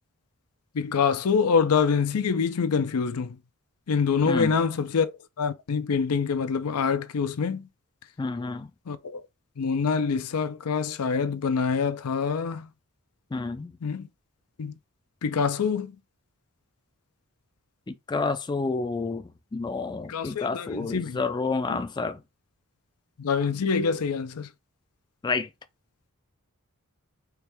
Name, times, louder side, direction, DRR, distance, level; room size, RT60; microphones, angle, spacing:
voice 1, 0.7-3.4 3.9-5.1 5.4-7.7 8.9-9.2 9.6-12.7 13.8-14.1 14.6-14.7 15.2-16.0 20.1-21.2 21.7-21.8 23.2-24.5, left 5 dB, 85° left, 0.5 m, -25 dB
voice 2, 8.2-8.7 13.3-13.8 17.9-22.2 25.2-25.5, left 3 dB, 20° left, 0.3 m, -29 dB
4.6 x 2.7 x 3.4 m
head